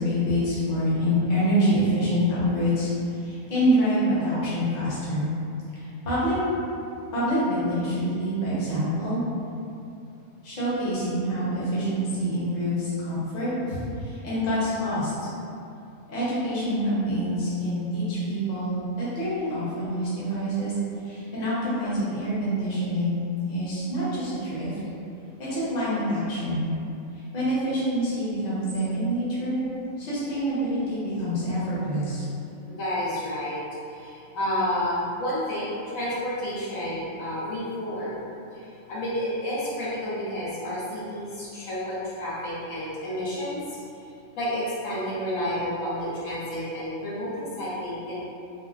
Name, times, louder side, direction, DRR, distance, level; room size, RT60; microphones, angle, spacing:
voice 1, 0.0-2.9 3.2-5.3 5.7-6.4 7.1-9.2 10.4-15.1 16.1-20.7 21.0-23.2 23.5-24.7 25.4-26.7 27.3-29.7 30.0-32.2, equal, 40° left, -10 dB, 0.8 m, -26 dB
voice 2, 32.7-33.6 33.9-38.2 38.5-43.6 44.4-48.3, equal, 75° left, -9 dB, 1.2 m, -30 dB
3.6 x 2.0 x 2.4 m, 2.6 s
omnidirectional pair, 1.4 m